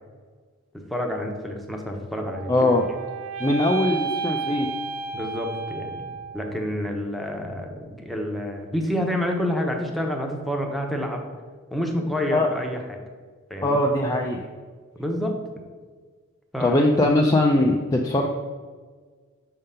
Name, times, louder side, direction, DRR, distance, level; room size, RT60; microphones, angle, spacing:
voice 1, 0.9-2.7 5.1-11.2 11.7-13.0 13.5-13.8 15.0-15.4 16.5-16.8, equal, ahead, 1 dB, 0.8 m, -28 dB
sound 1, 2.2-6.5, right 5 dB, 70° right, 1.0 m, -32 dB
voice 2, 2.5-2.9 3.4-4.7 12.3-12.5 13.6-14.4 16.6-18.3, left 1 dB, 15° left, 1 dB, 0.4 m, -21 dB
6.4 x 3.8 x 5.5 m, 1.5 s
head